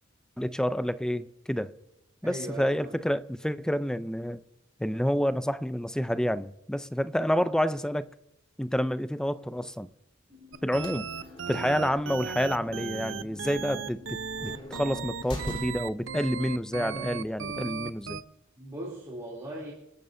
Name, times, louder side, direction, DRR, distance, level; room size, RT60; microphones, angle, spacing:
voice 1, 0.4-1.7 2.2-4.4 4.8-8.1 8.6-9.9 10.6-11.1 11.5-18.2, equal, 5° left, 0.5 m, -29 dB
voice 2, 2.2-3.0 11.5-12.1 18.6-19.7, right 1 dB, 15° right, 3.1 m, -39 dB
sound 1, 10.3-15.3, left 4 dB, 40° right, 4.8 m, -52 dB
sound 2, 10.5-16.1, equal, 30° left, 3.5 m, -43 dB
sound 3, 10.5-18.2, right 6 dB, 70° right, 0.8 m, -36 dB
30.0 x 12.0 x 2.7 m
head